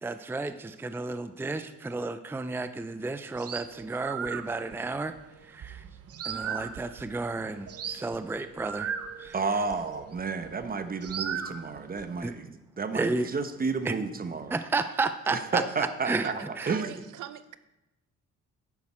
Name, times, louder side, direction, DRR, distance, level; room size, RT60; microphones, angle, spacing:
voice 1, 0.0-5.1 5.5-5.8 6.2-8.9 9.2-9.3 12.2-12.3 12.9-13.3 13.9-14.0 14.5-16.3 16.6-16.7, right 3 dB, 5° right, 11 dB, 0.5 m, -32 dB
sound 1, 3.3-10.7 11.0-12.2, right 7 dB, 50° right, 0.8 m, -38 dB
voice 2, 9.3-14.6 15.3-16.4 16.7-16.9, right 4 dB, 30° right, 9 dB, 1.0 m, -31 dB
voice 3, 16.2-17.6, right 11 dB, 80° right, 14 dB, 0.6 m, -40 dB
11.0 x 9.6 x 4.4 m, 0.98 s
cardioid pair, 90°, 30 cm